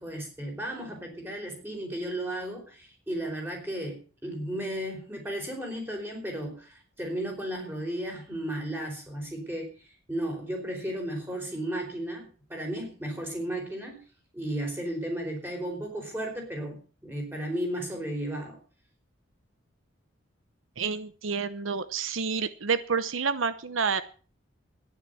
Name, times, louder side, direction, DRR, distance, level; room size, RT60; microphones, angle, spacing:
voice 1, 0.0-14.0 14.3-18.6, right 1 dB, 10° right, 1 dB, 4.8 m, -34 dB
voice 2, 20.8-24.0, right 5 dB, 80° right, 13 dB, 0.9 m, -29 dB
12.5 x 10.5 x 7.0 m, 0.40 s
head